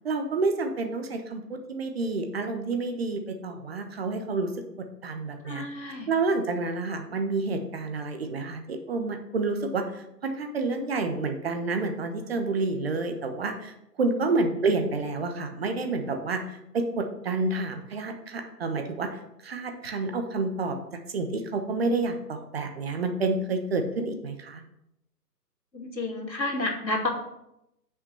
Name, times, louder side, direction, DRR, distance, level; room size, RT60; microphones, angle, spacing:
voice 1, 0.0-4.5 5.0-9.8 10.2-19.1 19.4-20.8 21.1-24.6, right 3 dB, 35° right, 6 dB, 1.1 m, -29 dB
voice 2, 5.4-6.1 25.7-27.1, left 2 dB, 85° left, 1 dB, 2.5 m, -30 dB
8.2 x 6.1 x 5.4 m, 0.84 s
figure-of-eight pair, 140°, 50 cm